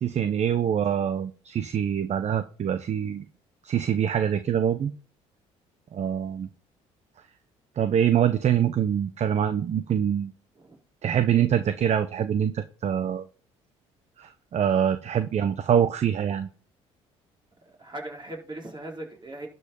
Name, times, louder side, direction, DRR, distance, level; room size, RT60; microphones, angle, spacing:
voice 1, 0.0-3.3 3.6-4.9 5.9-6.5 7.8-10.3 11.0-13.3 14.2-16.5, right 9 dB, 50° right, 11 dB, 0.9 m, -24 dB
voice 2, 17.8-19.5, right 1 dB, 30° right, 0 dB, 4.7 m, -39 dB
12.0 x 5.5 x 5.6 m, 0.38 s
hypercardioid pair, 60°, 15 cm